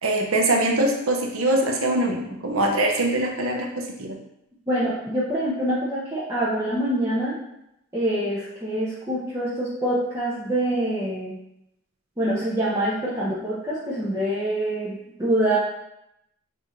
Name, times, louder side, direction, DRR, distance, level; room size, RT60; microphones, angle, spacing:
voice 1, 0.0-4.2, right 1 dB, 75° right, 1 dB, 0.7 m, -23 dB
voice 2, 4.7-7.4 7.9-11.4 12.2-15.6, right 1 dB, 15° right, -9 dB, 0.7 m, -25 dB
6.4 x 2.7 x 3.1 m, 0.82 s
head